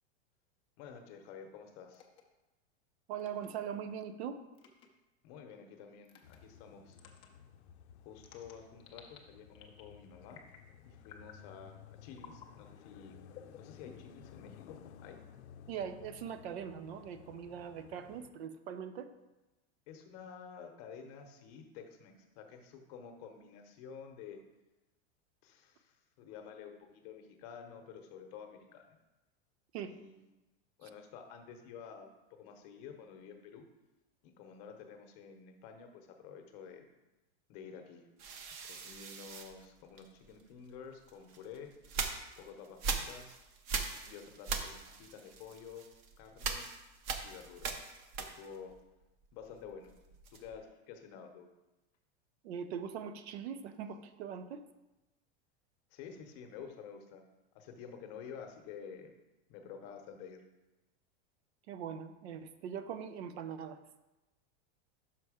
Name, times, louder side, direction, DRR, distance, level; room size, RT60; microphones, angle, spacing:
voice 1, 0.8-2.1 5.2-7.0 8.0-10.4 10.8-13.1 13.6-15.2 19.9-24.4 25.4-29.0 29.8-30.1 30.8-33.7 34.2-36.9 37.5-38.1 38.7-41.7 42.4-43.4 44.0-45.9 46.2-46.7 47.2-47.7 48.2-48.7 49.3-49.9 50.3-51.5 55.9-57.2 57.5-59.1 59.5-60.4, left 6 dB, 40° left, 5 dB, 0.8 m, -50 dB
sound 1, 1.9-2.2 3.2-3.5 4.5-4.9 6.0-6.4 6.9-7.3 8.2-9.2 9.5-9.9 10.3-10.7 11.0-11.4 12.2-12.5 13.3-14.2, left 8 dB, 20° left, 0.4 m, -55 dB
voice 2, 3.1-4.4 15.7-19.1 29.7-29.9 30.8-30.9 52.4-54.6 61.7-63.8, right 8 dB, 75° right, 10 dB, 0.7 m, -41 dB
sound 2, 6.2-18.3, left 9 dB, 90° left, 0.5 m, -56 dB
sound 3, 38.2-40.4 41.1-48.7 49.0-50.6, right 5 dB, 35° right, 0.6 m, -41 dB
5.9 x 5.4 x 4.9 m, 1.0 s
supercardioid pair, 170°, 33 cm